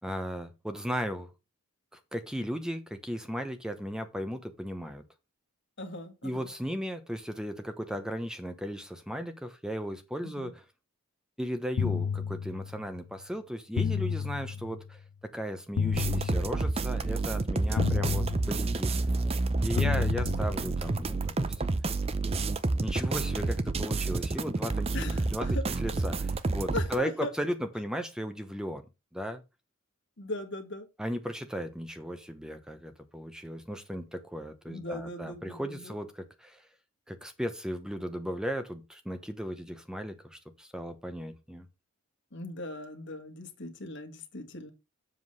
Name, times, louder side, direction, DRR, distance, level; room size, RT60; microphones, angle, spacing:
voice 1, 0.0-1.3 2.1-5.0 6.2-10.6 11.4-19.0 19.6-21.6 22.8-28.8 29.1-29.4 31.0-36.6 37.1-41.7, equal, 5° right, 0.9 m, -36 dB
voice 2, 5.8-6.5 10.4-10.5 17.6-17.9 19.7-20.1 24.9-25.2 25.5-25.6 26.7-27.3 30.2-30.9 34.7-35.9 42.3-44.7, left 1 dB, 55° left, 1.7 m, -39 dB
sound 1, 11.8-13.0 13.8-15.0 15.8-17.0 17.8-19.0 19.8-21.0, left 6 dB, 85° left, 0.4 m, -32 dB
sound 2, 15.9-26.9, right 3 dB, 25° right, 0.5 m, -29 dB
7.5 x 3.8 x 6.5 m
head